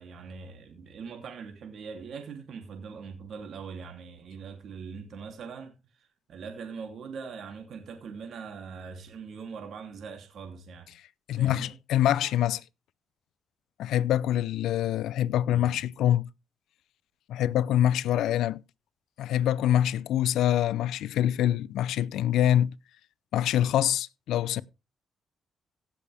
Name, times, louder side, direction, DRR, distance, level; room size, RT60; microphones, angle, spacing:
voice 1, 0.0-10.9 11.4-11.7 15.5-15.8, right 5 dB, 65° right, 3.0 m, -42 dB
voice 2, 11.3-12.6 13.8-16.3 17.3-18.6 19.2-22.7 23.3-24.6, left 11 dB, 80° left, 0.5 m, -25 dB
17.0 x 7.0 x 3.5 m
cardioid pair, 90°, 0 cm